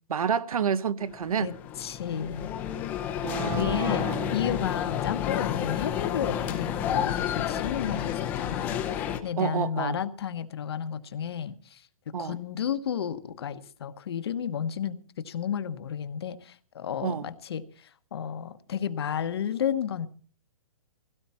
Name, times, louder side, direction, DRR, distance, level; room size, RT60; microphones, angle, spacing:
voice 1, 0.1-1.5 3.2-4.4 9.4-10.0 12.1-12.4 17.0-17.3, right 7 dB, 75° right, 1.0 m, -29 dB
sound 1, 1.0-9.2, left 10 dB, 10° left, 0.7 m, -30 dB
voice 2, 1.4-2.5 3.3-11.8 12.2-20.1, left 8 dB, 45° left, 1.1 m, -32 dB
18.0 x 16.5 x 4.3 m
hypercardioid pair, 180°, 18 cm